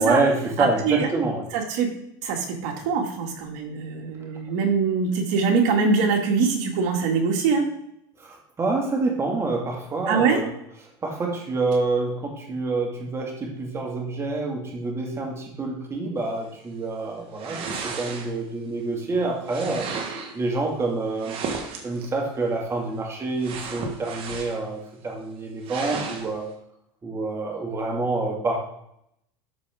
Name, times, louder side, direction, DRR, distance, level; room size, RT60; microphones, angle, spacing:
voice 1, 0.0-1.5 8.2-10.5 11.0-19.9 20.3-21.4 21.8-26.5 27.0-28.6, right 3 dB, 20° right, 0 dB, 2.0 m, -27 dB
voice 2, 0.6-1.1 1.5-1.9 2.2-7.7 10.1-10.4, right 5 dB, 65° right, 2 dB, 2.1 m, -23 dB
sound 1, 17.4-18.6 19.5-20.4 21.2-22.1 23.4-24.7 25.1-25.2 25.6-26.3, right 5 dB, 45° right, 1.5 m, -34 dB
12.5 x 4.8 x 3.6 m, 0.74 s
supercardioid pair, 125°, 13 cm